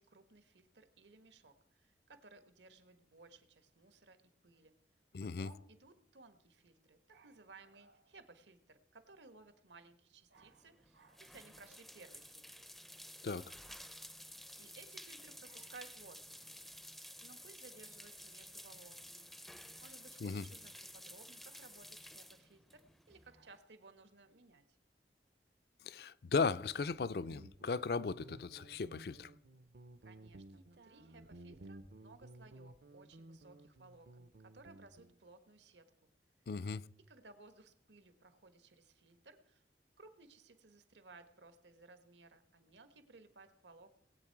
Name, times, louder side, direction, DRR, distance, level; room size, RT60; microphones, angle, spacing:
voice 1, 0.0-4.8 5.2-12.6 14.3-16.3 17.2-19.3 19.8-24.8 30.0-36.1 37.1-39.6 40.0-43.9, right 3 dB, 80° right, 1.4 m, -60 dB
voice 2, 5.1-5.5 13.2-13.5 20.2-20.4 25.8-29.3 36.5-36.9, left 4 dB, 60° left, 0.4 m, -37 dB
sound 1, 10.3-23.6, equal, ahead, 0.4 m, -53 dB
Guitar, 26.7-35.2, right 1 dB, 65° right, 0.7 m, -56 dB
19.5 x 8.5 x 4.6 m
head